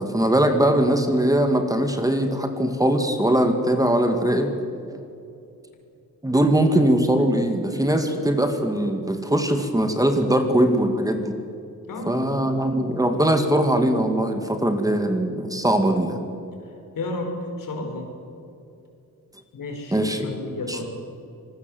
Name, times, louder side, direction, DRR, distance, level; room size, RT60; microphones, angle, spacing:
voice 1, 0.0-4.5 6.2-11.3 12.1-16.3 19.9-20.3 20.7-20.9, right 1 dB, 10° right, 6 dB, 2.1 m, -21 dB
voice 2, 11.9-12.2 17.0-18.1 19.5-20.9, left 2 dB, 75° left, 3 dB, 5.4 m, -32 dB
25.5 x 20.0 x 7.8 m, 2.6 s
wide cardioid pair, 135°, 33 cm